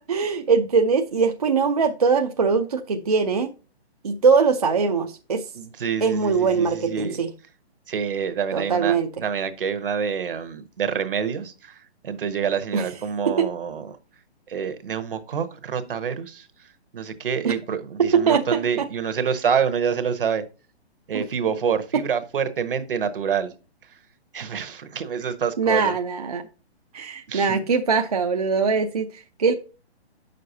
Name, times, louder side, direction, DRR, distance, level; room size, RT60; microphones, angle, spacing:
voice 1, 0.0-3.5 4.0-5.5 6.0-7.3 8.5-9.1 12.7-12.9 13.3-13.5 17.4-17.6 18.0-18.9 21.1-21.2 25.6-26.4 26.9-29.5, right 5 dB, 35° right, 0.5 m, -22 dB
voice 2, 5.5-7.2 7.9-14.0 14.5-16.5 16.9-20.4 21.1-23.5 24.3-26.0 27.3-27.6, right 7 dB, 55° right, 1.1 m, -27 dB
8.6 x 6.6 x 2.7 m
hypercardioid pair, 170°, 33 cm